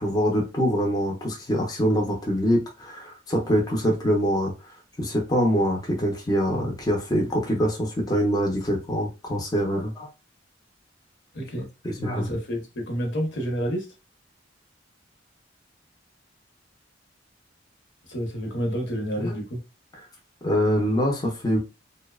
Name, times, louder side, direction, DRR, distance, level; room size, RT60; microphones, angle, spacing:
voice 1, 0.0-4.5 5.0-10.1 11.8-12.3 19.2-19.4 20.4-21.6, equal, 20° left, 0.5 m, -24 dB
voice 2, 11.3-11.7 12.1-13.9 18.1-19.6, equal, 70° left, 0.8 m, -29 dB
2.6 x 2.0 x 2.3 m
head